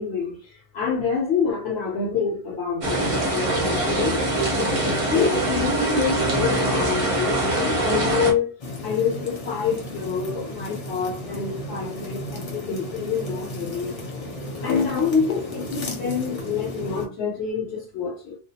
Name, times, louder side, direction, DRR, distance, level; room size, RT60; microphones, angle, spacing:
voice 1, 0.0-4.2 4.6-8.5 8.8-14.0 14.6-18.4, left 6 dB, 70° left, 0.8 m, -27 dB
sound 1, 2.8-8.3, right 1 dB, 40° right, 0.6 m, -23 dB
sound 2, 8.6-17.1, left 1 dB, 40° left, 0.6 m, -34 dB
2.2 x 2.1 x 2.7 m
omnidirectional pair, 1.1 m